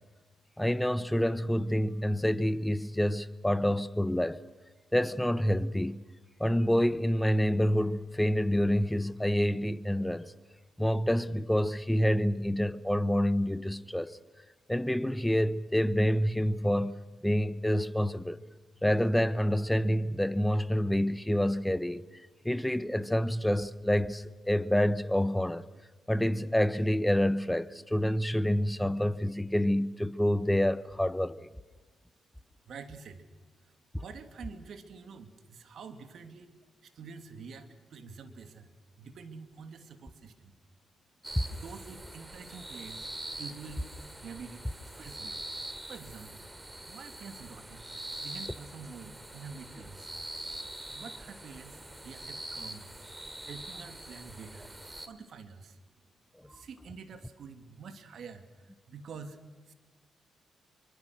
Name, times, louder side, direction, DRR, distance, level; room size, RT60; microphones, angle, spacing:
voice 1, 0.6-4.4 4.9-6.0 6.4-10.3 10.8-14.2 14.7-16.9 17.2-18.4 18.8-22.0 22.4-25.6 26.1-31.4 41.3-41.4, equal, 5° left, 1.2 m, -27 dB
voice 2, 32.7-33.3 34.0-36.5 36.8-38.7 39.0-40.5 41.5-43.1 43.4-44.6 44.9-45.5 45.9-46.5 46.9-47.8 48.2-50.1 50.9-54.7 55.1-55.8 56.5-59.4 59.7-59.8, right 5 dB, 70° right, 2.6 m, -47 dB
sound 1, 41.2-55.1, right 1 dB, 20° right, 3.1 m, -44 dB
28.0 x 24.5 x 6.3 m
supercardioid pair, 55°, 0 cm